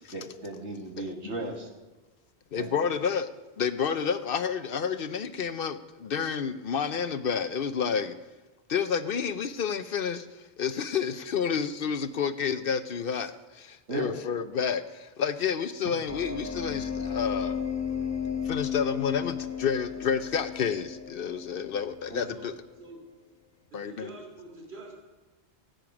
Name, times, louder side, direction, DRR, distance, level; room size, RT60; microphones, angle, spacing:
voice 1, 0.1-1.7 2.6-2.9 13.9-14.2 22.1-22.3, right 2 dB, 90° right, 2 dB, 2.0 m, -36 dB
voice 2, 2.5-3.3 3.6-8.2 8.7-17.6 18.4-22.5 23.7-24.1, left 7 dB, 60° left, 11 dB, 0.8 m, -30 dB
sound 1, 16.1-22.6, left 7 dB, 15° left, 0.8 m, -34 dB
voice 3, 22.3-23.0 23.7-25.0, right 2 dB, 65° right, 1 dB, 3.2 m, -46 dB
15.0 x 9.1 x 6.0 m, 1.2 s
omnidirectional pair, 1.1 m